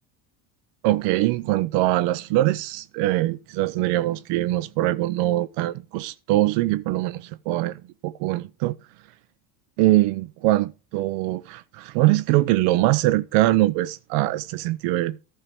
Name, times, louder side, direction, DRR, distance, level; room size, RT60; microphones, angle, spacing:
voice 1, 0.8-8.8 9.8-15.2, right 17 dB, 70° right, 0.6 m, -22 dB
11.0 x 4.6 x 6.8 m
supercardioid pair, 95°, 44 cm